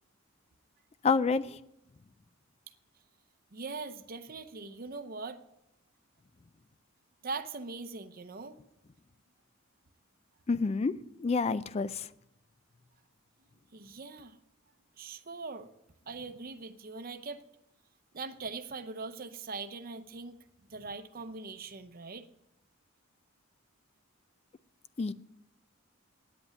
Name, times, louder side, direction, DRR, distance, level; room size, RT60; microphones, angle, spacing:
voice 1, 1.0-1.6 10.5-10.9 11.2-12.1 25.0-25.1, left 4 dB, 30° left, 16 dB, 0.3 m, -28 dB
voice 2, 3.5-5.4 7.2-8.6 13.7-14.4 15.0-15.7 16.1-17.4 18.1-20.4 20.7-22.3, right 4 dB, 45° right, 8 dB, 0.7 m, -41 dB
9.4 x 8.1 x 9.4 m, 0.83 s
head